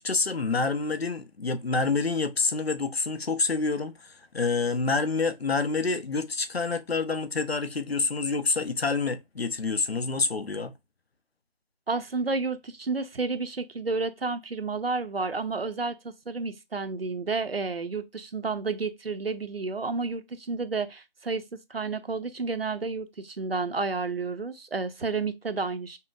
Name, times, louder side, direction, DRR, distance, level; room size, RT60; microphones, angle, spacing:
voice 1, 0.0-10.7, left 4 dB, 80° left, 0.8 m, -27 dB
voice 2, 11.9-26.0, right 4 dB, 75° right, 0.7 m, -31 dB
5.5 x 2.2 x 2.5 m
figure-of-eight pair, 175°, 30 cm